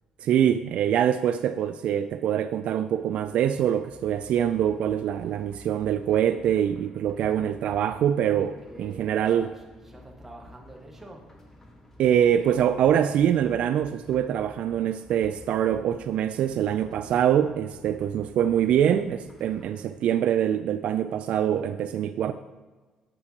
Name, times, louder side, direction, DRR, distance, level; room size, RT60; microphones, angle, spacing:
voice 1, 0.2-9.5 12.0-22.3, right 9 dB, 65° right, 10 dB, 0.3 m, -24 dB
sound 1, 2.9-19.9, left 1 dB, 20° left, 1.4 m, -51 dB
voice 2, 8.6-11.3 19.6-20.0, right 1 dB, 15° right, 1 dB, 1.5 m, -47 dB
8.7 x 7.7 x 2.9 m, 1.3 s
cardioid pair, 100°, 2 cm